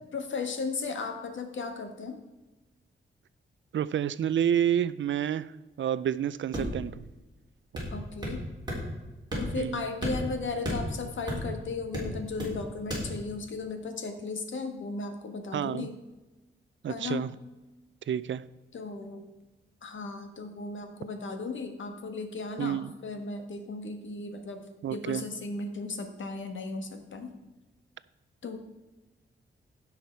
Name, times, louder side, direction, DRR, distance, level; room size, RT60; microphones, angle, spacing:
voice 1, 0.1-2.2 7.9-8.4 9.3-16.0 16.9-17.3 18.7-19.2 19.8-27.3 28.4-28.6, left 3 dB, 70° left, 6 dB, 1.6 m, -36 dB
voice 2, 3.7-5.5 5.8-7.1 9.6-9.8 15.5-15.9 16.8-17.3 18.1-18.4 22.6-22.9 24.8-25.2, right 10 dB, 65° right, 17 dB, 0.5 m, -29 dB
sound 1, 6.5-6.9 7.7-8.4 8.7-8.8 9.3-9.7 10.0-11.6 11.9-12.6 12.9-13.1, equal, 20° right, 3.9 m, -33 dB
16.0 x 5.9 x 4.6 m, 1.1 s
wide cardioid pair, 140°, 21 cm